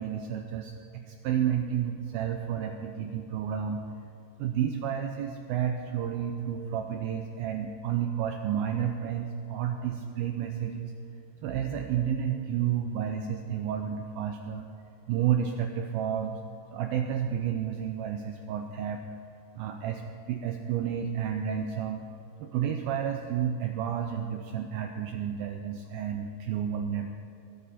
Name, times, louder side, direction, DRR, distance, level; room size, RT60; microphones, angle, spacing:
voice 1, 0.0-3.8 4.4-10.9 11.4-14.7 15.1-16.4 16.7-19.0 19.6-22.0 22.4-27.2, right 9 dB, 90° right, 4 dB, 2.1 m, -31 dB
21.0 x 12.5 x 4.2 m, 2.7 s
omnidirectional pair, 5.0 m